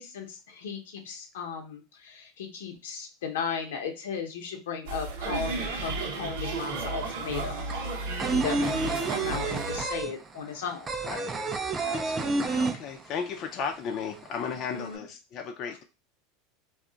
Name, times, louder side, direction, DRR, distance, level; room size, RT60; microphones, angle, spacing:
voice 1, 0.0-7.7 8.2-10.9 14.7-15.0, left 6 dB, 85° left, 3 dB, 0.7 m, -36 dB
sound 1, 4.9-9.9, right 3 dB, 70° right, 0.8 m, -33 dB
sound 2, 6.5-6.6 6.8-13.4 13.7-13.8 14.1-14.9, right 3 dB, 20° right, 0.4 m, -29 dB
voice 2, 11.8-15.8, left 6 dB, 45° left, 3 dB, 0.4 m, -35 dB
2.3 x 2.0 x 3.8 m, 0.29 s
supercardioid pair, 115°, 0 cm